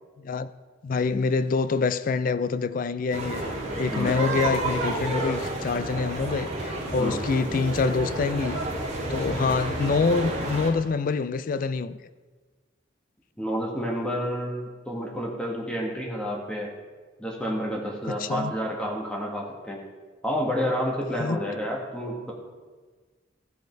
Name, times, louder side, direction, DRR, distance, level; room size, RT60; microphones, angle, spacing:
voice 1, 0.8-3.5 3.7-8.6 9.1-12.0 18.1-18.5 21.2-21.4, left 4 dB, 50° left, 0.4 m, -26 dB
sound 1, 3.1-10.7, right 1 dB, 40° right, 1.8 m, -30 dB
voice 2, 13.4-16.7 17.2-19.8 20.2-22.3, equal, 5° left, 1.7 m, -29 dB
14.0 x 5.2 x 4.6 m
head